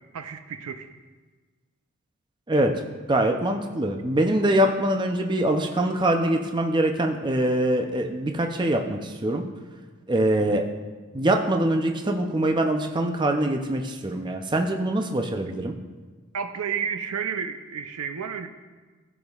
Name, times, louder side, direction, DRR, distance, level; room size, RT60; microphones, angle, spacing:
voice 1, 0.1-0.9 10.4-10.6 16.3-18.5, right 7 dB, 80° right, 9 dB, 0.6 m, -31 dB
voice 2, 2.5-2.8 3.1-9.4 10.1-10.7 11.1-15.7, right 1 dB, 20° right, 3 dB, 0.5 m, -23 dB
14.5 x 7.1 x 2.4 m, 1.3 s
head